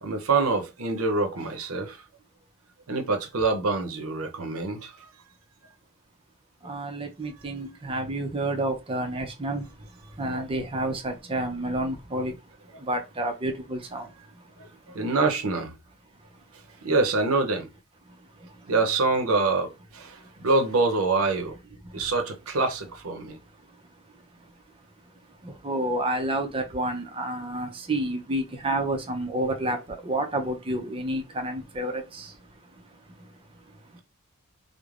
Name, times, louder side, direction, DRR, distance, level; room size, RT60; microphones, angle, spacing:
voice 1, 0.0-2.0 2.9-5.1 14.6-15.7 16.8-17.7 18.7-21.6 21.9-23.4, right 3 dB, 70° right, 0.6 m, -25 dB
voice 2, 6.6-15.0 16.8-16.9 18.1-18.7 20.2-20.5 21.8-22.0 23.7-23.8 24.1-24.5 25.3-34.0, right 1 dB, 25° right, 0.5 m, -31 dB
3.1 x 2.0 x 2.4 m
head